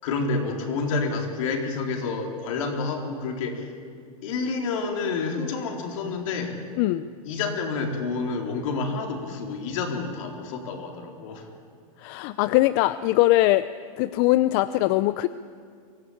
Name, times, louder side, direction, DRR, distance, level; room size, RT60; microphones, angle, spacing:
voice 1, 0.0-3.7 4.2-6.6 7.2-11.5, left 4 dB, 65° left, 1 dB, 4.0 m, -29 dB
voice 2, 12.0-13.7 14.0-15.3, left 17 dB, 45° left, 14 dB, 0.5 m, -21 dB
23.5 x 14.5 x 8.8 m, 2.2 s
hypercardioid pair, 130°, 18 cm